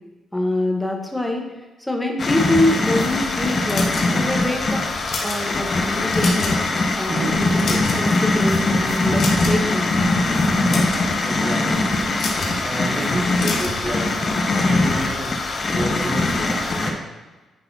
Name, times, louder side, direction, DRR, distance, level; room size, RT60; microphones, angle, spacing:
voice 1, 0.3-1.5 1.8-4.8 5.2-6.6 7.0-9.9, left 1 dB, 5° left, 2 dB, 1.2 m, -25 dB
sound 1, 2.2-16.9, left 2 dB, 45° left, 0.9 m, -21 dB
sound 2, 3.7-4.4 4.9-5.4 5.9-6.6 6.9-7.1 7.5-8.2 9.2-9.7 10.5-11.0 12.1-12.6 13.4-13.8, left 3 dB, 65° left, 1.2 m, -28 dB
voice 2, 7.0-8.0 10.7-12.0 12.6-17.1, right 2 dB, 40° right, -3 dB, 1.0 m, -31 dB
9.3 x 3.9 x 2.8 m, 1.2 s
supercardioid pair, 65°, 0 cm